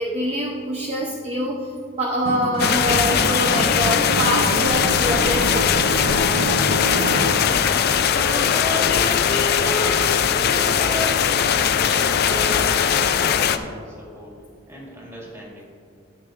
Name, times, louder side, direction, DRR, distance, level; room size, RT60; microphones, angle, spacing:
voice 1, 0.0-1.6 2.0-6.1, equal, 30° right, -1 dB, 0.7 m, -25 dB
Acoustic guitar, 2.3-7.4, right 1 dB, 85° right, 0.7 m, -27 dB
sound 1, 2.6-13.6, left 8 dB, 55° left, 0.4 m, -20 dB
Wind instrument woodwind instrument, 7.0-13.6, left 2 dB, 15° left, 1.5 m, -31 dB
voice 2, 10.0-12.9 13.2-14.4 14.7-15.7, equal, 15° right, -4 dB, 2.0 m, -41 dB
13.0 x 6.8 x 2.5 m, 2.4 s
head